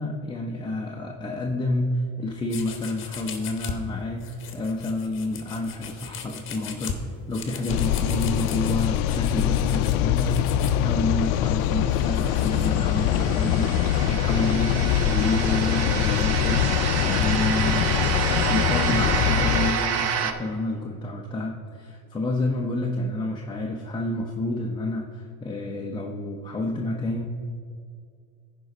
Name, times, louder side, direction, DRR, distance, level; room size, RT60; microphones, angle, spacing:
voice 1, 0.0-27.3, left 2 dB, 10° left, -1 dB, 0.6 m, -29 dB
sound 1, 2.5-3.8 4.1-10.8 11.3-12.7, left 8 dB, 30° left, 1.2 m, -38 dB
sound 2, 7.7-19.7, left 11 dB, 70° left, 0.5 m, -23 dB
sound 3, 11.9-20.3, right 7 dB, 40° right, 0.7 m, -29 dB
14.5 x 5.3 x 4.0 m, 2.2 s
supercardioid pair, 130°, 38 cm